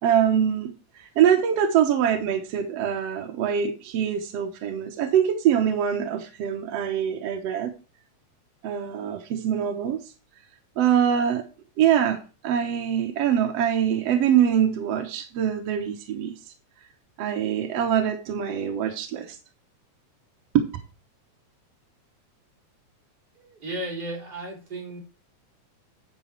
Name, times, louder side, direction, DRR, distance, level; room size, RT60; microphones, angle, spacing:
voice 1, 0.0-7.7 8.6-10.0 10.8-11.4 11.8-16.3 17.2-19.4 20.5-20.7, right 9 dB, 65° right, 4 dB, 1.9 m, -24 dB
voice 2, 23.3-25.0, right 1 dB, 30° right, -2 dB, 4.3 m, -34 dB
9.9 x 5.4 x 4.5 m, 0.34 s
omnidirectional pair, 3.5 m